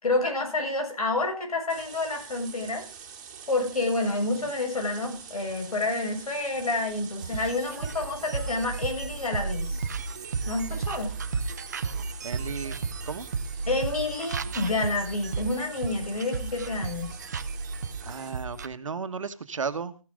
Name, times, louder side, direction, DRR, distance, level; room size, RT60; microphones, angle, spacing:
voice 1, 0.0-2.8 3.5-9.8 10.5-11.1 13.7-17.2, left 2 dB, 90° left, 3 dB, 6.8 m, -29 dB
sound 1, 1.7-18.3, right 7 dB, 15° right, 2.4 m, -46 dB
sound 2, 7.2-18.7, right 4 dB, 30° right, 0.7 m, -33 dB
voice 2, 12.2-12.8 13.0-13.3 18.0-20.0, right 5 dB, 60° right, 11 dB, 1.5 m, -34 dB
15.0 x 11.5 x 3.7 m, 0.35 s
hypercardioid pair, 175°, 18 cm